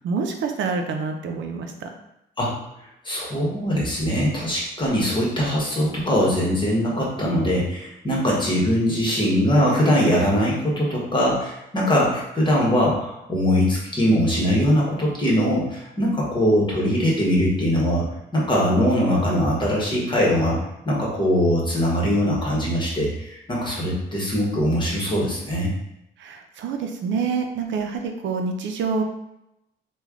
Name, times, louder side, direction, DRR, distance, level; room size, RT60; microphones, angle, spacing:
voice 1, 0.0-1.9 26.2-29.0, right 5 dB, 70° right, 4 dB, 0.5 m, -27 dB
voice 2, 3.0-18.0 18.3-20.6 20.8-25.7, equal, 25° left, -4 dB, 1.2 m, -21 dB
3.2 x 2.3 x 3.6 m, 0.85 s
cardioid pair, 90°, 20 cm